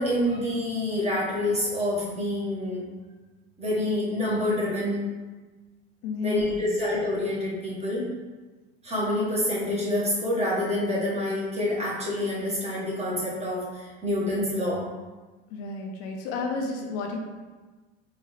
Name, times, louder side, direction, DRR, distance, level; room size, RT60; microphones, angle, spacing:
voice 1, 0.0-2.8 3.6-5.0 6.2-8.0 8.8-14.9, left 1 dB, 20° right, -6 dB, 1.4 m, -27 dB
voice 2, 6.0-6.7 15.5-17.2, left 3 dB, 65° left, 2 dB, 0.7 m, -31 dB
3.9 x 2.7 x 3.2 m, 1.3 s
supercardioid pair, 95°, 30 cm